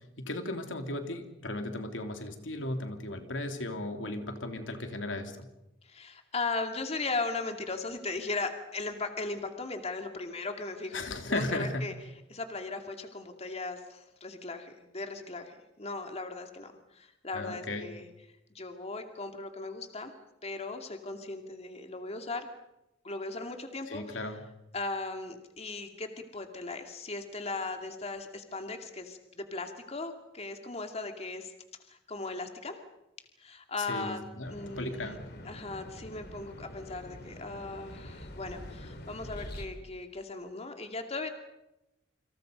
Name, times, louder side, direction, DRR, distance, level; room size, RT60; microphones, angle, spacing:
voice 1, 0.2-5.5 10.9-11.8 17.3-17.9 23.9-24.4 33.9-35.2, left 2 dB, 85° left, 5 dB, 3.2 m, -36 dB
voice 2, 5.8-11.0 11.3-11.9 12.3-18.1 18.5-20.1 20.4-22.5 23.0-24.2 24.7-31.5 31.9-32.8 33.4-34.2 34.5-35.2 35.4-41.3, left 3 dB, 35° left, 5 dB, 2.4 m, -37 dB
sound 1, 34.4-39.7, left 1 dB, 60° left, 3.5 m, -45 dB
29.0 x 26.5 x 5.3 m, 0.89 s
head